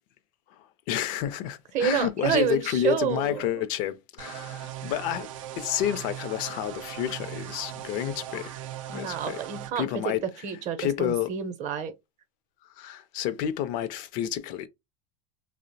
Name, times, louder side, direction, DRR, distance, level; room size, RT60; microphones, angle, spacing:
voice 1, 0.5-8.6 8.9-9.4 9.8-10.2 10.8-11.3 12.8-14.7, left 11 dB, 55° left, 0.4 m, -30 dB
voice 2, 1.7-3.5 8.9-10.2 10.4-11.9, right 9 dB, 45° right, 0.6 m, -29 dB
sound 1, 4.2-9.7, right 12 dB, 85° right, 0.4 m, -39 dB
2.7 x 2.0 x 2.6 m
hypercardioid pair, 100°, 17 cm